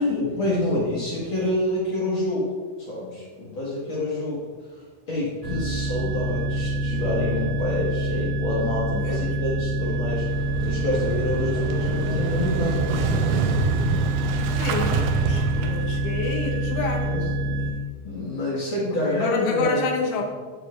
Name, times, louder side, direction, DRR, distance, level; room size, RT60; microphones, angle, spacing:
voice 1, 0.0-2.5 2.9-13.1 17.1-17.2 18.0-19.8, left 2 dB, 50° left, -7 dB, 2.1 m, -27 dB
sound 1, 5.4-17.7, right 1 dB, 35° right, 1.6 m, -26 dB
voice 2, 8.9-9.4 14.6-17.1 17.4-17.7 19.1-20.2, left 4 dB, 65° left, 1 dB, 1.6 m, -29 dB
Motorcycle / Engine starting, 10.3-16.1, right 4 dB, 85° right, 2.1 m, -27 dB
11.0 x 4.4 x 2.5 m, 1.5 s
omnidirectional pair, 3.4 m